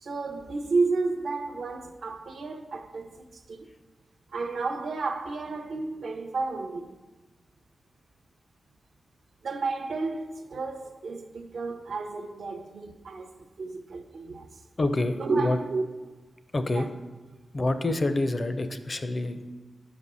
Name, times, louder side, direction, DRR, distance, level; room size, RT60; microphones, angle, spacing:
voice 1, 0.0-3.7 4.3-6.9 9.4-14.5 15.2-15.8 16.7-16.9, right 3 dB, 70° right, 0.5 m, -31 dB
voice 2, 14.8-15.6 16.5-16.9 17.5-19.5, left 2 dB, 40° left, 0.5 m, -27 dB
5.2 x 4.1 x 6.0 m
cardioid pair, 60°, 0 cm